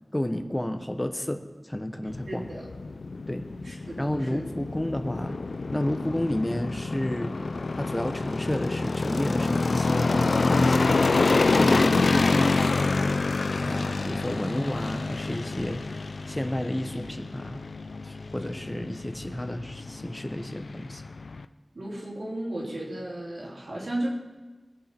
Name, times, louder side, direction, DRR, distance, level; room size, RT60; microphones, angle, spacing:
voice 1, 0.1-2.5 3.3-3.5 4.0-5.4 5.7-7.3 7.8-11.1 11.5-12.9 13.6-15.8 16.3-17.6 18.0-21.0, left 1 dB, 20° left, 7 dB, 1.1 m, -31 dB
sound 1, 2.1-21.4, left 3 dB, 90° left, 0.4 m, -27 dB
voice 2, 2.3-2.7 3.6-4.4 21.7-24.1, right 1 dB, 85° right, -5 dB, 3.6 m, -34 dB
21.5 x 8.6 x 4.5 m, 1.3 s
wide cardioid pair, 65°, 0 cm